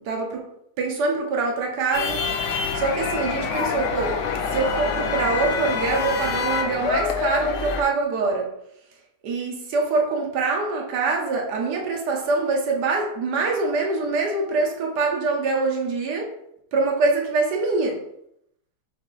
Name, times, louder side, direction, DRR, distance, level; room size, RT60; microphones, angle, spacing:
voice 1, 0.1-0.5 0.8-2.2 2.7-4.2 4.5-8.5 9.2-16.3 16.7-18.0, right 3 dB, 90° right, 1 dB, 1.4 m, -24 dB
sound 1, 1.9-7.8, left 5 dB, 65° left, 0.7 m, -26 dB
6.3 x 2.5 x 3.1 m, 0.77 s
omnidirectional pair, 1.7 m